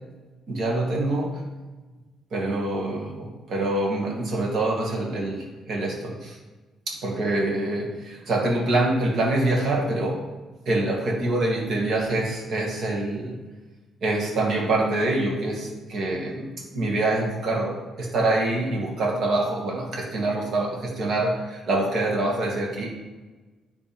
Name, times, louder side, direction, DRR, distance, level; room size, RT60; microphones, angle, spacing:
voice 1, 0.5-1.4 2.3-6.4 6.9-10.2 10.7-13.4 14.0-22.9, right 2 dB, 65° right, -1 dB, 1.9 m, -25 dB
10.0 x 3.5 x 3.5 m, 1.2 s
supercardioid pair, 65°, 0 cm